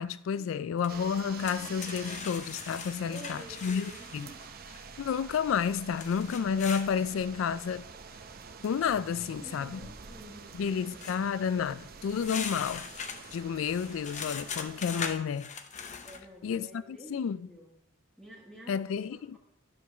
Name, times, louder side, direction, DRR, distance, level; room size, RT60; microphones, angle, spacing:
voice 1, 0.0-4.3 5.0-7.8 8.6-9.8 10.5-12.8 13.3-15.5 16.4-17.5 18.7-19.4, left 7 dB, 85° left, 0.3 m, -31 dB
sound 1, 0.8-0.9 1.3-4.5 6.0-6.9 11.0-11.2 12.1-16.2, left 6 dB, 40° left, 0.8 m, -40 dB
sound 2, 0.9-15.2, right 5 dB, 50° right, 0.8 m, -47 dB
voice 2, 3.1-4.4 9.3-10.5 12.2-12.6 16.0-17.8 18.2-19.4, right 1 dB, ahead, 1.4 m, -49 dB
10.5 x 4.8 x 6.9 m
head